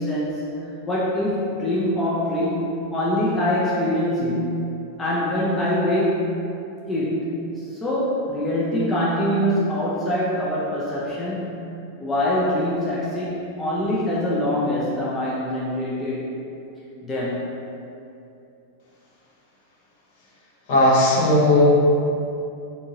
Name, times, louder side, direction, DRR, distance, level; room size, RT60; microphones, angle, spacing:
voice 1, 0.0-2.6 2.9-6.3 6.9-7.3 7.6-11.5 12.0-16.4 17.0-17.5, left 1 dB, 15° left, -8 dB, 0.5 m, -24 dB
voice 2, 20.7-21.6, left 1 dB, 50° left, -6 dB, 0.8 m, -16 dB
3.5 x 2.6 x 2.8 m, 2.7 s
figure-of-eight pair, 90°, 0 cm